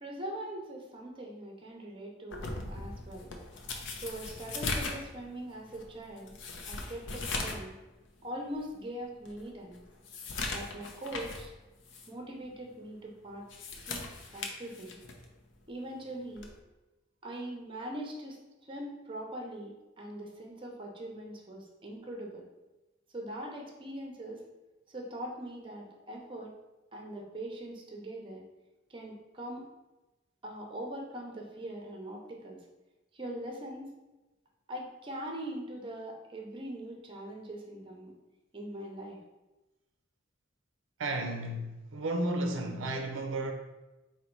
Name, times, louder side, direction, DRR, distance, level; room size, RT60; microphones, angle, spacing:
voice 1, 0.0-3.3 4.0-6.4 6.7-7.7 8.2-9.8 10.5-11.5 12.1-13.5 13.8-15.0 15.7-16.5 17.2-18.4 18.7-22.5 23.1-24.4 24.9-26.5 26.9-28.4 28.9-29.6 30.4-32.6 33.1-33.9 34.7-38.1 38.5-39.2, right 1 dB, 25° right, 0 dB, 0.6 m, -42 dB
sound 1, 2.3-7.7 8.0-8.1 8.7-8.8 9.2-11.5 11.8-12.1 13.3-15.3 16.4-16.6, left 3 dB, 70° left, 0.6 m, -39 dB
voice 2, 41.0-43.5, right 1 dB, 80° right, 4 dB, 0.5 m, -33 dB
4.0 x 2.2 x 4.5 m, 1.1 s
head